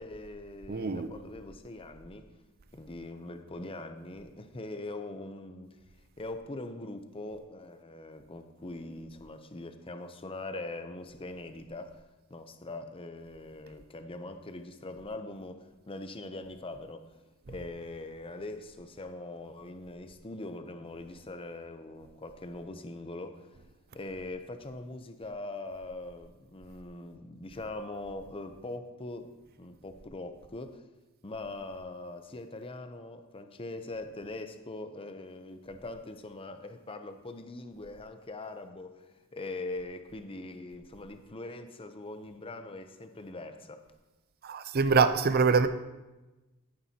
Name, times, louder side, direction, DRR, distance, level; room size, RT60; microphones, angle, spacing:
voice 1, 0.0-2.3 2.7-5.8 6.2-12.0 12.3-17.1 17.5-23.5 23.9-29.3 29.6-30.8 31.2-43.8, left 2 dB, 25° left, 0.6 m, -42 dB
voice 2, 0.7-1.1 44.4-45.7, right 5 dB, 45° right, 0.5 m, -24 dB
13.5 x 8.7 x 2.8 m
head